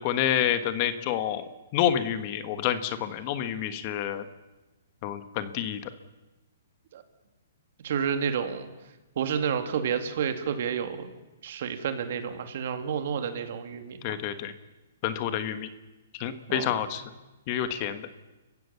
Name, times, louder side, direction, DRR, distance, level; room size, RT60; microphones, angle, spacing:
voice 1, 0.0-1.4 1.7-4.2 5.0-5.9 14.0-14.5 15.0-15.7 16.1-17.0 17.5-18.1, left 10 dB, 35° left, 11 dB, 1.5 m, -28 dB
voice 2, 7.8-8.7 9.2-11.1 11.4-14.2 16.5-16.7, right 7 dB, 55° right, 8 dB, 2.6 m, -30 dB
29.5 x 15.5 x 7.1 m, 1.1 s
hypercardioid pair, 145°, 0 cm